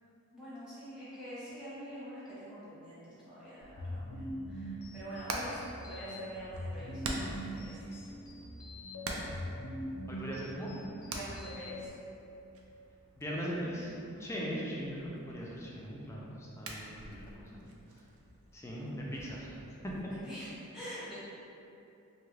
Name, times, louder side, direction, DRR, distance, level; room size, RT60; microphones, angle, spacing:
voice 1, 0.3-7.2 7.6-8.1 11.0-11.9 14.1-14.4 18.7-19.0 20.2-21.1, equal, 5° right, -12 dB, 1.0 m, -46 dB
sound 1, 3.6-11.9, equal, 75° left, 0.5 m, -42 dB
Hammer, 4.8-20.0, right 2 dB, 65° right, 0.4 m, -46 dB
voice 2, 10.1-10.7 13.2-13.9 14.2-17.6 18.5-19.6 19.8-19.9, equal, 10° left, -4 dB, 0.4 m, -39 dB
2.8 x 2.4 x 3.1 m, 2.8 s
head